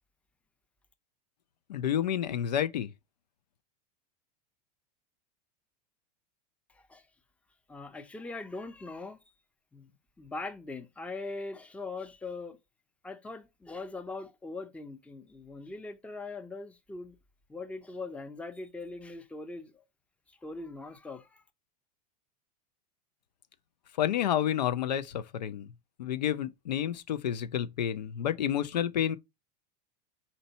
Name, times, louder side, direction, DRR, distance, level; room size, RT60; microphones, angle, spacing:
voice 1, 1.7-2.9 24.0-25.7 26.0-29.2, left 10 dB, 85° left, 0.5 m, -30 dB
voice 2, 7.7-9.2 9.7-9.9 10.2-12.6 13.0-17.1 17.5-19.8 20.3-21.4, left 3 dB, 5° left, 0.5 m, -41 dB
4.4 x 2.6 x 3.9 m
hypercardioid pair, 105°, 21 cm